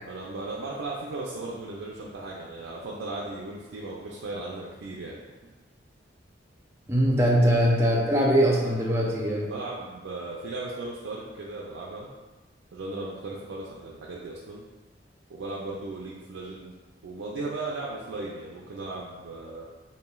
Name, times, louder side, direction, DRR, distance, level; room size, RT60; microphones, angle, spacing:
voice 1, 0.0-5.5 7.4-7.5 9.4-12.1 12.7-14.6 15.3-16.7 17.0-19.6, right 2 dB, 80° right, -4 dB, 0.4 m, -36 dB
voice 2, 6.9-9.5, equal, 15° right, -3 dB, 0.4 m, -22 dB
3.0 x 2.6 x 2.3 m, 1.2 s
head